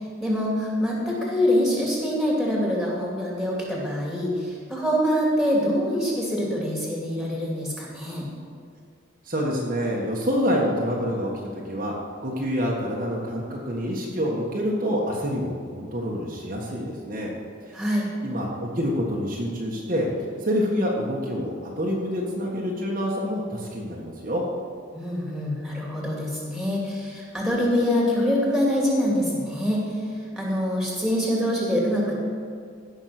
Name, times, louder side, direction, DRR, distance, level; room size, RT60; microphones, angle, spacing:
voice 1, 0.2-8.3 17.7-18.1 24.9-29.9 30.3-32.1, equal, ahead, -4 dB, 2.8 m, -25 dB
voice 2, 9.2-11.9 12.2-17.3 17.7-17.8 18.2-20.1 20.4-24.4, equal, 40° right, -3 dB, 1.6 m, -27 dB
16.0 x 6.5 x 6.1 m, 2.2 s
head